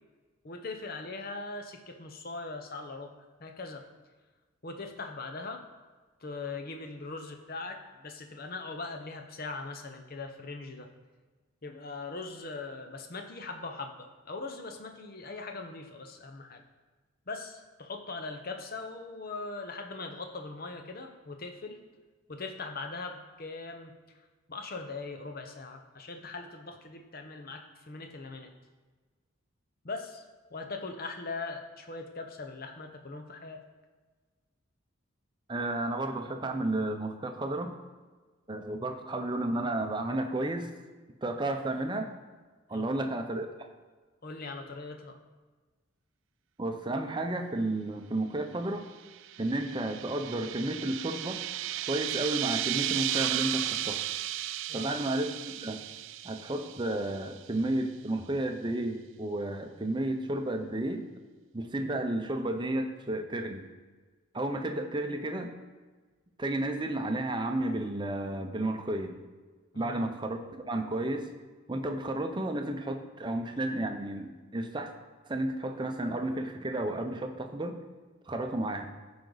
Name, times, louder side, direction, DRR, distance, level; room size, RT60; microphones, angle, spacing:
voice 1, 0.4-3.1 3.4-3.8 4.6-5.6 6.2-10.9 11.6-16.6 17.3-21.8 22.3-23.9 24.5-28.5 29.8-30.2 30.5-33.6 42.7-43.0 44.2-45.2 54.7-55.0 69.7-70.1, left 3 dB, 45° left, 5 dB, 0.9 m, -40 dB
voice 2, 35.5-37.7 38.5-40.7 41.2-42.1 42.7-43.5 46.6-48.9 49.4-51.4 51.9-54.0 54.7-55.8 56.2-61.1 61.5-63.7 64.3-65.5 66.4-69.2 69.7-70.4 70.7-71.3 71.7-74.9 75.3-77.8 78.3-78.9, right 1 dB, 20° right, 5 dB, 0.7 m, -32 dB
sound 1, 49.1-57.4, right 13 dB, 65° right, 0.3 m, -34 dB
14.0 x 5.2 x 4.0 m, 1.3 s
head